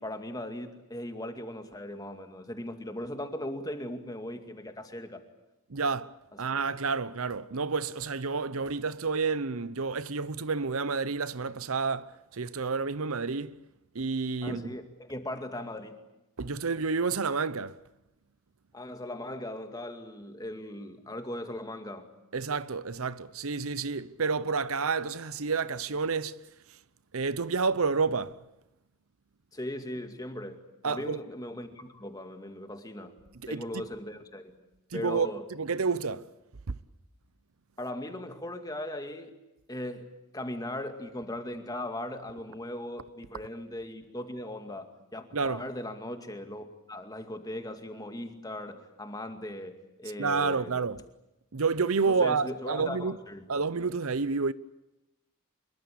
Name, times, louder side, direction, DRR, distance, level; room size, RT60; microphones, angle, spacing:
voice 1, 0.0-5.2 6.3-6.4 14.4-16.0 18.7-22.1 29.5-33.2 33.5-34.6 34.9-35.5 37.8-39.4 39.7-40.1 40.3-50.8 52.1-53.5, left 1 dB, 15° left, 2.2 m, -38 dB
voice 2, 5.7-6.1 6.4-13.6 13.9-14.6 16.4-17.8 22.3-26.4 27.1-28.4 30.8-31.2 33.4-33.8 34.9-36.3 36.7-36.8 45.3-45.6 50.2-51.0 51.5-53.2 53.5-54.5, right 4 dB, 75° right, 0.8 m, -29 dB
25.5 x 22.5 x 8.6 m
head